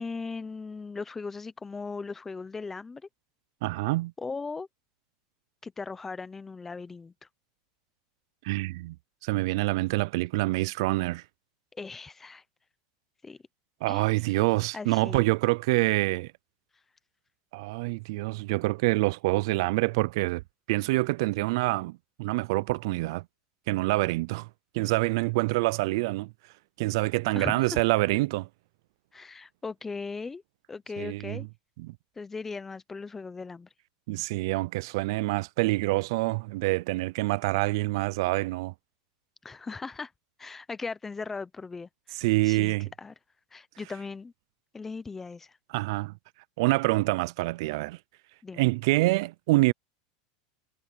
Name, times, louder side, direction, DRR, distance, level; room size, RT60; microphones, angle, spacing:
voice 1, 0.0-3.0 4.2-4.7 5.6-7.1 11.8-12.4 13.2-13.4 13.9-14.0 14.7-15.2 27.3-27.8 29.1-30.4 30.7-31.5 32.2-33.7 39.4-40.1 40.4-43.1 43.5-44.3 44.7-45.5 48.4-48.6, left 4 dB, 10° left, 0.7 m, -38 dB
voice 2, 3.6-4.1 8.4-9.0 9.2-11.2 13.8-16.3 17.5-20.4 20.7-23.2 23.7-24.5 24.7-26.3 26.8-28.5 31.0-31.5 31.8-32.0 34.1-38.7 42.2-42.9 45.7-46.1 46.6-48.0 48.6-49.7, right 22 dB, 60° right, 0.3 m, -26 dB
supercardioid pair, 160°, 3 cm